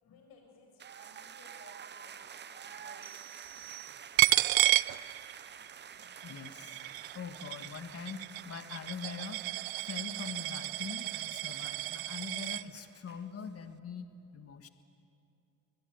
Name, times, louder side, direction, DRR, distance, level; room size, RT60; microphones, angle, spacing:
voice 1, 0.0-3.2 4.1-5.1, left 4 dB, 70° left, 2 dB, 7.8 m, -60 dB
sound 1, 0.8-13.5, right 8 dB, 30° right, 0.6 m, -50 dB
sound 2, 3.0-4.5, right 14 dB, 45° right, 1.2 m, -51 dB
Coin (dropping), 4.2-5.7 6.0-12.6, right 19 dB, 70° right, 0.5 m, -31 dB
voice 2, 6.0-6.9 7.1-9.4 9.8-14.7, left 6 dB, 40° left, 8 dB, 1.6 m, -43 dB
23.0 x 21.0 x 9.5 m, 2.7 s
cardioid pair, 100°, 37 cm